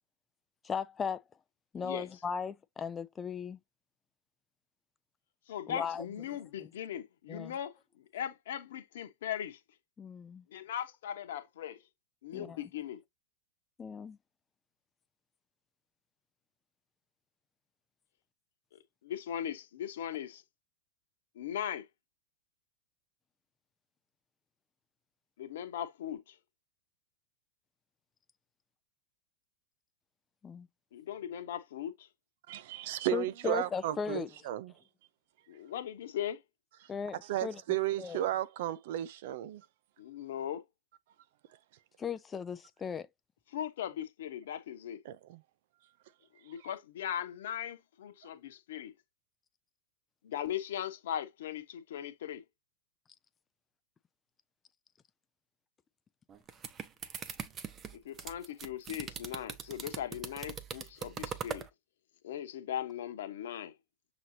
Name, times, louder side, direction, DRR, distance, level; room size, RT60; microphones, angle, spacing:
voice 1, 0.6-1.2 1.7-3.6 5.7-6.1 7.3-7.5 10.0-10.4 12.3-12.6 13.8-14.2 30.4-30.7 33.1-34.3 36.9-37.6 38.0-38.2 42.0-43.1, left 6 dB, 20° left, 0.4 m, -37 dB
voice 2, 5.5-9.6 10.5-11.8 12.2-13.0 19.0-20.4 21.3-21.9 25.4-26.4 30.9-32.1 35.5-36.4 40.0-40.6 43.5-45.0 46.4-48.9 50.2-52.4 58.0-61.6 62.2-63.7, left 10 dB, 70° left, 1.1 m, -39 dB
voice 3, 32.5-34.7 37.3-39.6 45.1-45.4, right 14 dB, 65° right, 0.5 m, -34 dB
sound 1, 56.3-61.7, right 7 dB, 30° right, 0.8 m, -41 dB
6.1 x 3.0 x 2.7 m
hypercardioid pair, 110°, 0 cm